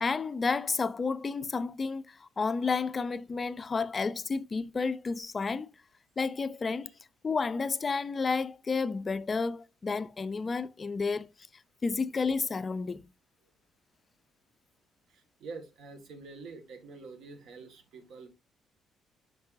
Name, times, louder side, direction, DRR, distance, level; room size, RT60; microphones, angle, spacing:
voice 1, 0.0-5.7 6.2-6.9 7.2-11.3 11.8-13.1, left 4 dB, 25° left, 0.4 m, -31 dB
voice 2, 15.1-18.3, right 4 dB, 65° right, 1.7 m, -46 dB
9.3 x 5.3 x 2.6 m
cardioid pair, 160°, 0 cm